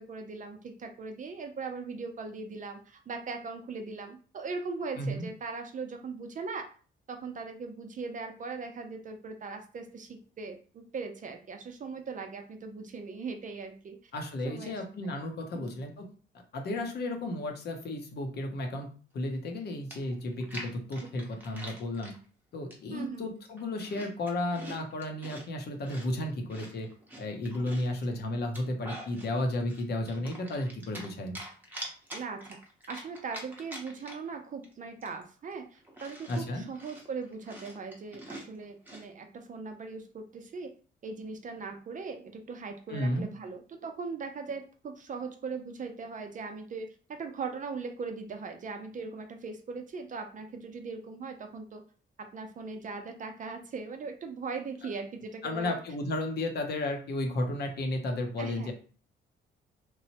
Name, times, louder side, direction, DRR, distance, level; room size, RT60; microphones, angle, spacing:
voice 1, 0.0-6.7 7.1-14.0 14.4-14.8 15.5-15.8 22.9-23.3 32.1-32.6 32.9-40.7 41.0-51.8 52.2-55.8 58.4-58.7, right 4 dB, 40° right, 5 dB, 0.5 m, -39 dB
voice 2, 5.0-5.3 14.1-16.1 16.5-18.9 19.1-22.1 22.5-26.9 27.2-31.4 36.3-36.6 42.9-43.3 55.4-58.7, left 1 dB, 55° left, 4 dB, 0.8 m, -33 dB
Chewing mastication, 19.5-19.6 19.9-22.2 22.7-23.1 23.4-25.5 25.8-28.0 28.4-29.3 29.7-31.1 31.3-34.3 34.6-34.7 35.0-39.1, equal, 10° right, 0.8 m, -45 dB
3.0 x 2.1 x 2.8 m, 0.40 s
cardioid pair, 90°, 20 cm